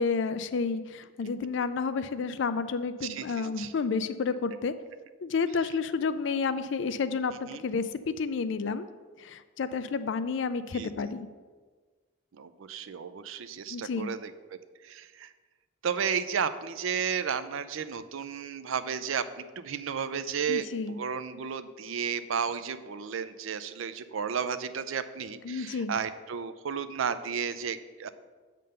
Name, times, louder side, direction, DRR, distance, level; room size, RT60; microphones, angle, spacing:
voice 1, 0.0-4.7 5.2-8.9 9.2-11.3 13.7-14.1 20.5-21.0 25.4-25.9, left 5 dB, 60° left, 12 dB, 0.4 m, -30 dB
voice 2, 3.1-3.7 7.5-7.6 10.7-10.9 12.3-14.3 14.8-15.3 15.8-28.1, right 7 dB, 80° right, 12 dB, 0.5 m, -33 dB
7.6 x 3.8 x 6.7 m, 1.4 s
head